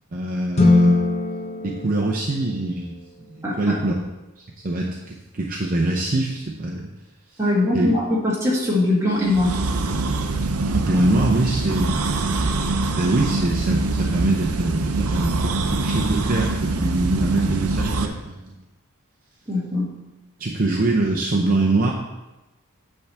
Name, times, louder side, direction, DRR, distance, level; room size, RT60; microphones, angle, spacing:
voice 1, 0.1-1.0 1.6-2.9 3.3-3.9 4.4-6.9 7.3-7.4 7.7-7.9 10.7-12.1 12.6-18.6 20.4-21.9, right 2 dB, 40° right, -1 dB, 0.6 m, -24 dB
sound 1, 0.5-3.0, left 2 dB, 30° left, 1.0 m, -20 dB
voice 2, 3.4-3.8 7.4-9.6 19.5-19.9, left 1 dB, 15° right, -5 dB, 1.8 m, -21 dB
sound 2, 9.2-18.1, right 3 dB, 80° right, 0.6 m, -24 dB
8.4 x 3.5 x 6.6 m, 1.0 s
head